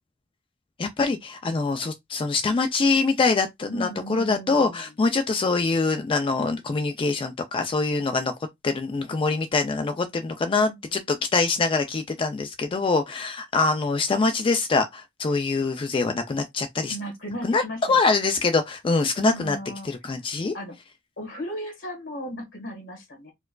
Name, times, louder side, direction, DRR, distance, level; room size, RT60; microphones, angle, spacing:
voice 1, 0.8-8.3 8.6-17.0 17.4-17.6 17.9-19.6 19.8-20.5, left 3 dB, 25° left, 0.3 m, -24 dB
voice 2, 3.7-4.8 10.5-10.9 16.9-18.0 19.2-20.2 20.5-20.8 21.2-23.3, equal, 70° left, 1.5 m, -36 dB
4.3 x 2.3 x 2.2 m
head